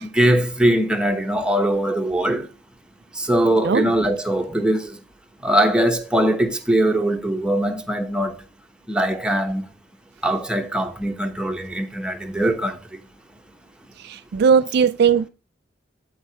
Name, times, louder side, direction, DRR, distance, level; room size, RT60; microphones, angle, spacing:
voice 1, 0.0-2.5 3.2-5.0 5.4-8.3 8.9-9.6 10.2-12.8, right 1 dB, 5° right, 0.9 m, -21 dB
voice 2, 14.0-15.3, right 6 dB, 60° right, 0.4 m, -18 dB
13.5 x 4.6 x 3.1 m
head